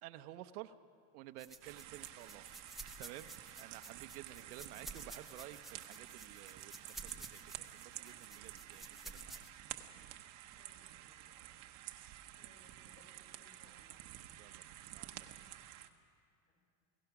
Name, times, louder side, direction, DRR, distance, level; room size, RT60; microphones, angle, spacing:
voice 1, 0.0-0.7 1.1-2.5 3.0-3.3 3.6-9.4 14.4-15.4, right 14 dB, 75° right, 10 dB, 0.8 m, -53 dB
sound 1, 1.4-9.5, right 2 dB, ahead, 0.5 m, -53 dB
sound 2, 1.6-15.9, right 14 dB, 40° right, 0.9 m, -51 dB
voice 2, 10.6-11.6 12.3-14.0 16.5-16.6, left 3 dB, 35° left, 0 dB, 5.5 m, -68 dB
28.5 x 18.0 x 5.9 m, 2.3 s
supercardioid pair, 170°, 45 cm